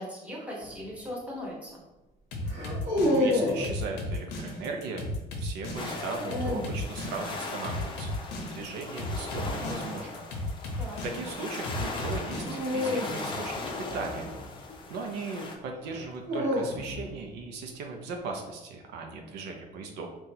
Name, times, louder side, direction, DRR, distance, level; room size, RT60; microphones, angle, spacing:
voice 1, 0.0-1.8 10.8-11.0, left 1 dB, 5° right, -5 dB, 1.2 m, -39 dB
sound 1, 0.6-0.9 2.5-3.7 5.8-6.8 9.3-9.6 12.4-14.8 15.9-17.2, left 1 dB, 40° right, 1.2 m, -30 dB
sound 2, 2.3-12.8, left 2 dB, 85° left, 0.7 m, -35 dB
voice 2, 3.1-5.1 5.4-8.2 8.4-10.2 10.7-14.3 14.5-14.6 14.9-20.1, right 3 dB, 90° right, 2 dB, 0.6 m, -38 dB
sound 3, 5.7-15.5, left 3 dB, 30° left, 0.6 m, -39 dB
3.9 x 2.4 x 2.7 m, 1.0 s
cardioid pair, 110°, 17 cm